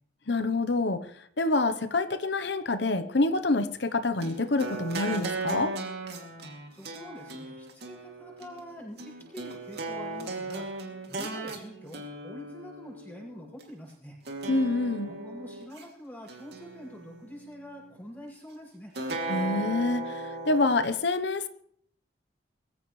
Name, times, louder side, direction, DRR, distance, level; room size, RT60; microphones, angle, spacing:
voice 1, 0.3-1.0 1.4-5.7 14.5-15.1 19.3-21.5, left 2 dB, 65° left, 11 dB, 0.9 m, -27 dB
sound 1, 4.2-13.7 14.3-15.8 16.3-17.4 18.9-20.9, right 2 dB, 55° right, 2.7 m, -37 dB
voice 2, 6.7-10.7 11.1-14.2 15.0-18.9, equal, 10° left, -5 dB, 6.5 m, -45 dB
23.0 x 15.0 x 3.2 m, 0.64 s
head